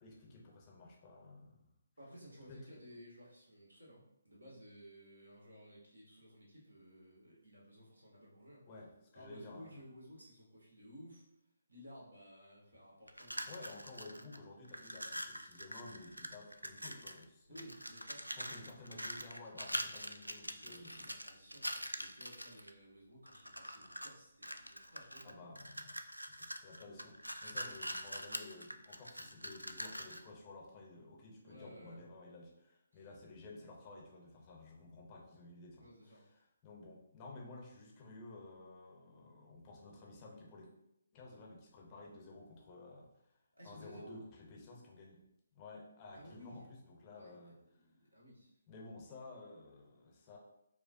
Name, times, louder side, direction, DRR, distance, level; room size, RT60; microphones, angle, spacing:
voice 1, 0.0-1.7 2.5-2.7 8.7-9.9 13.5-17.7 18.4-21.1 25.2-40.7 41.1-43.4 43.6-45.2 45.5-47.8 48.7-50.4, left 2 dB, 25° left, -2 dB, 0.6 m, -53 dB
voice 2, 2.0-8.7 9.1-11.3 11.7-13.8 14.7-14.9 17.5-18.5 20.5-25.6 26.6-27.0 31.4-32.0 32.9-33.1 35.8-36.2 43.6-44.2 46.1-46.7 47.1-48.5, equal, 75° right, -5 dB, 1.5 m, -56 dB
sound 1, 13.1-14.4 14.6-17.2 17.5-22.7 23.3-24.1 24.4-30.3, equal, 90° right, 0.3 m, -44 dB
4.7 x 2.2 x 2.5 m, 0.81 s
figure-of-eight pair, 140°, 0 cm